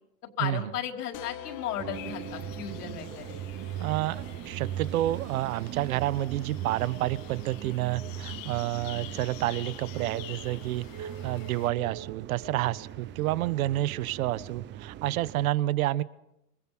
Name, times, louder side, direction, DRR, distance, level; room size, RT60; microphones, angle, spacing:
voice 1, 0.4-3.4, left 8 dB, 80° left, 3 dB, 5.4 m, -35 dB
sound 1, 1.1-6.6, left 11 dB, 40° left, 3.1 m, -48 dB
sound 2, 1.8-15.5, right 11 dB, 25° right, 0.9 m, -39 dB
sound 3, 1.9-11.7, left 15 dB, 55° left, 2.1 m, -48 dB
voice 2, 3.8-16.0, right 15 dB, 65° right, 17 dB, 1.3 m, -29 dB
27.5 x 25.5 x 6.2 m, 0.85 s
supercardioid pair, 135°, 45 cm